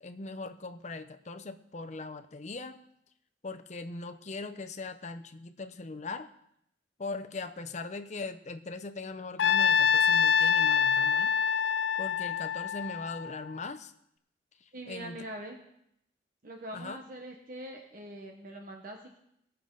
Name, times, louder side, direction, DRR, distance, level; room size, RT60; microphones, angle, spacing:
voice 1, 0.0-2.8 3.4-6.3 7.0-11.3 12.0-13.9 14.9-15.2 16.7-17.0, left 3 dB, 40° left, 9 dB, 0.7 m, -40 dB
Trumpet, 9.4-13.6, left 7 dB, 75° left, 0.4 m, -26 dB
voice 2, 14.7-15.6 16.4-19.2, right 1 dB, 50° right, 2 dB, 1.2 m, -43 dB
19.0 x 6.8 x 3.9 m, 0.76 s
head